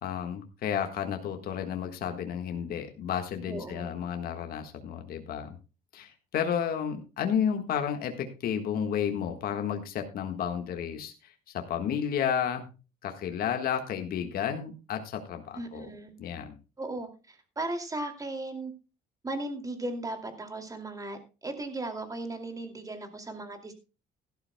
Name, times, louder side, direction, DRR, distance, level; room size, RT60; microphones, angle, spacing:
voice 1, 0.0-5.5 5.9-12.7 13.0-15.9 16.2-16.5, left 8 dB, 60° left, 5 dB, 1.5 m, -32 dB
voice 2, 3.5-4.0 15.5-16.1 16.8-18.7 19.2-23.7, right 2 dB, 20° right, 6 dB, 2.4 m, -37 dB
16.5 x 12.0 x 2.2 m, 0.31 s
cardioid pair, 110°, 17 cm